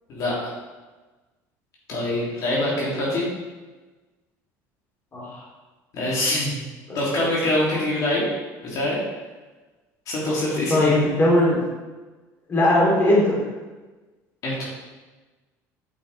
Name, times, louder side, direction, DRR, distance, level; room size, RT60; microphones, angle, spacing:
voice 1, 0.1-0.6 1.9-3.2 5.9-6.6 6.9-8.2 8.6-9.0 10.1-10.9 14.4-14.6, left 1 dB, 55° left, -5 dB, 2.6 m, -24 dB
voice 2, 5.1-5.4 6.9-7.0 10.7-11.6 12.5-13.3, left 1 dB, 30° left, -5 dB, 2.6 m, -19 dB
8.7 x 5.3 x 4.0 m, 1.3 s
cardioid pair, 115°, 7 cm